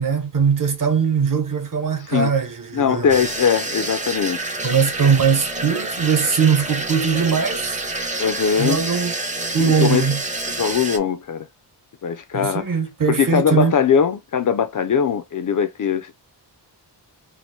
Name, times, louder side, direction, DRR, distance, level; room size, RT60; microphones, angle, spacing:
voice 1, 0.0-3.2 4.6-7.8 8.6-9.1 9.5-10.2 12.3-13.8, right 6 dB, 45° right, 1.1 m, -20 dB
voice 2, 2.0-2.3 2.7-4.5 8.2-8.8 9.8-10.1 10.6-11.5 12.0-12.8 13.1-16.1, left 7 dB, 45° left, 0.4 m, -21 dB
sound 1, 3.1-11.0, right 2 dB, 15° right, 0.7 m, -28 dB
2.9 x 2.5 x 4.1 m
wide cardioid pair, 145°, 43 cm